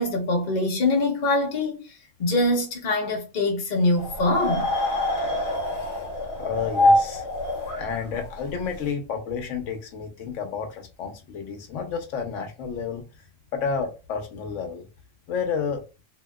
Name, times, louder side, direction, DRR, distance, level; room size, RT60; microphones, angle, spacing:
voice 1, 0.0-4.7, left 2 dB, 40° left, 0.8 m, -24 dB
sound 1, 4.0-8.9, left 1 dB, 65° left, 1.2 m, -25 dB
voice 2, 6.4-7.3 7.8-13.0 13.5-14.9 15.3-15.8, left 6 dB, 80° left, 1.0 m, -30 dB
2.8 x 2.8 x 2.2 m
omnidirectional pair, 1.3 m